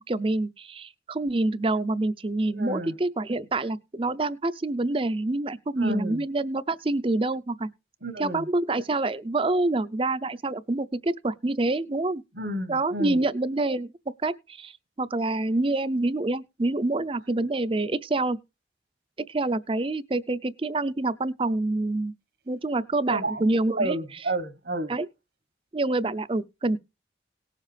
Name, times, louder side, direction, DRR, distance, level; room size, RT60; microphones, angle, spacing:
voice 1, 0.0-7.7 8.2-12.2 12.7-13.9 14.2-14.7 15.0-18.4 19.3-22.1 22.5-24.0 24.9-25.1 25.7-26.8, right 2 dB, 30° right, 0.5 m, -27 dB
voice 2, 2.5-2.9 5.8-6.2 8.0-8.5 12.4-13.2 23.1-23.5 23.8-24.9, right 1 dB, 70° right, 1.2 m, -31 dB
18.5 x 7.4 x 3.3 m
head